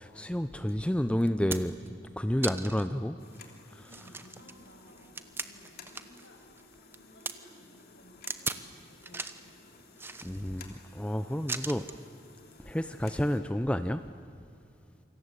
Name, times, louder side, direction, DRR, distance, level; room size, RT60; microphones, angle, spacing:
voice 1, 0.0-1.7 2.2-3.2 3.8-3.9 10.2-11.9 12.7-14.0, equal, 5° left, 10 dB, 0.6 m, -30 dB
sound 1, 0.7-0.8 1.2-1.9 2.4-2.9 3.3-3.4 3.8-6.3 6.6-7.3 8.3-8.7 9.0-9.5 10.0-10.7 11.5-12.0 13.1-13.2, right 3 dB, 15° right, 1.0 m, -38 dB
sound 2, 3.2-13.4, left 4 dB, 55° left, 3.0 m, -55 dB
voice 2, 3.9-6.4 6.9-9.5, equal, 85° left, 2 dB, 6.4 m, -57 dB
27.5 x 25.5 x 8.2 m, 2.5 s
head